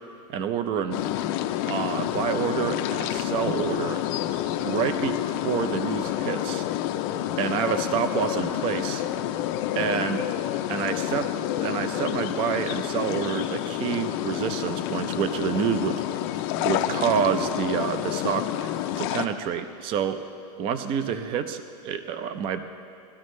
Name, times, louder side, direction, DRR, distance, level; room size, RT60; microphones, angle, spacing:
voice 1, 0.3-1.0 1.7-4.0 4.6-5.2 5.4-6.7 7.4-9.0 9.7-10.2 10.7-11.3 11.6-16.0 16.6-20.2 20.6-22.6, right 7 dB, 25° right, 10 dB, 0.5 m, -28 dB
sound 1, 0.9-19.3, left 12 dB, 40° left, 0.5 m, -29 dB
19.0 x 13.0 x 3.2 m, 2.6 s
supercardioid pair, 155°, 19 cm